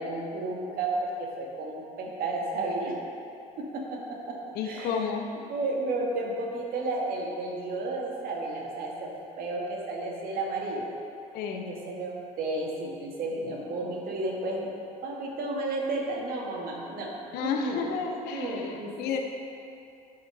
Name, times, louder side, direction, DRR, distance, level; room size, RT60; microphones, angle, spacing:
voice 1, 0.0-2.9 3.7-3.8 4.1-4.4 4.6-5.0 5.5-9.1 9.4-10.9 11.5-14.7 15.0-17.1 17.4-17.8 18.3-18.9, right 2 dB, 55° right, -1 dB, 1.8 m, -32 dB
voice 2, 4.5-5.3 11.3-11.7 17.3-19.2, left 6 dB, 60° left, 3 dB, 0.9 m, -31 dB
11.0 x 6.6 x 3.3 m, 2.6 s
hypercardioid pair, 65°, 18 cm